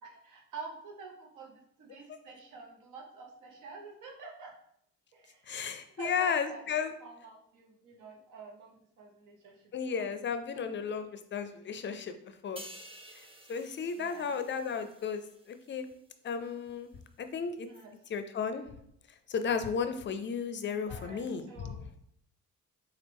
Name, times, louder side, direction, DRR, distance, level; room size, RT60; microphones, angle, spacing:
voice 1, 0.0-4.5 5.1-5.6 6.0-6.6 7.0-10.1 10.5-10.6 13.9-14.4 17.7-17.9 20.9-21.8, right 4 dB, 85° right, 0 dB, 1.0 m, -48 dB
voice 2, 5.5-6.9 9.7-12.2 12.4-12.6 13.5-15.9 16.2-16.9 17.2-17.7 18.1-18.7 19.3-21.7, left 6 dB, 40° left, 9 dB, 0.4 m, -34 dB
sound 1, 12.6-16.1 16.5-16.7, right 1 dB, 20° right, 0.6 m, -52 dB
4.3 x 2.4 x 3.4 m, 0.71 s
cardioid pair, 90°, 30 cm